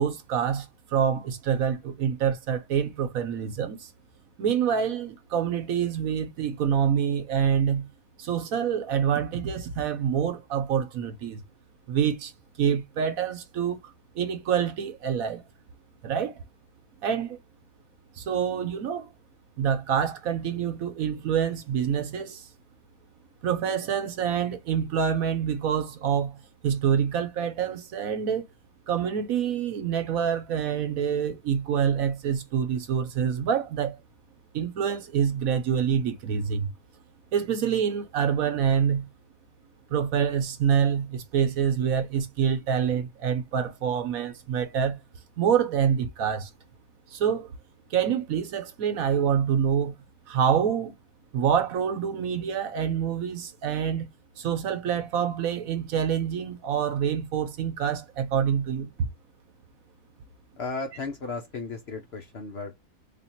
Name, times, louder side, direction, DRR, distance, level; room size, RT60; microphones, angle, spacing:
voice 1, 0.0-3.9 4.4-7.9 8.2-11.4 11.9-12.3 12.6-13.8 14.1-15.4 16.0-16.4 17.0-17.4 18.2-19.1 19.6-22.5 23.4-28.4 28.9-34.0 34.5-36.7 37.3-39.1 39.9-45.0 45.4-46.5 47.1-47.5 47.9-49.9 50.3-50.9 51.3-54.1 54.4-58.9, right 8 dB, 65° right, 1.2 m, -26 dB
voice 2, 60.6-62.8, left 3 dB, 55° left, 0.8 m, -35 dB
3.5 x 2.5 x 4.4 m
omnidirectional pair, 1.6 m